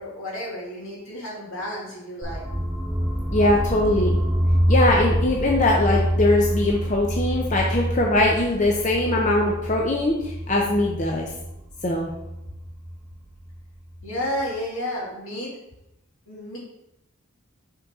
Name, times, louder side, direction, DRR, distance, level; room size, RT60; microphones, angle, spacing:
voice 1, 0.0-2.4 14.0-15.5 16.3-16.6, left 1 dB, 80° left, -5 dB, 2.4 m, -31 dB
sound 1, 2.2-14.1, equal, 5° left, 1.3 m, -26 dB
voice 2, 3.3-4.2 4.7-11.3 11.8-12.1, left 2 dB, 35° left, -1 dB, 0.6 m, -21 dB
5.5 x 5.4 x 3.6 m, 0.89 s
head